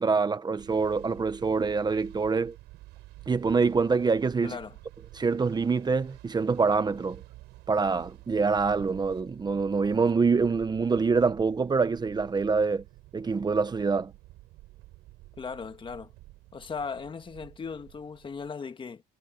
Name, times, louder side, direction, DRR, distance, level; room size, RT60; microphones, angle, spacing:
voice 1, 0.0-2.6 3.3-4.6 5.1-7.2 7.7-12.8 13.1-14.1, right 4 dB, 25° right, 1.1 m, -25 dB
sound 1, 0.6-18.5, right 18 dB, 90° right, 7.0 m, -50 dB
voice 2, 4.4-4.8 15.4-16.1 16.5-19.0, left 5 dB, 30° left, 1.6 m, -37 dB
cardioid pair, 110°, 17 cm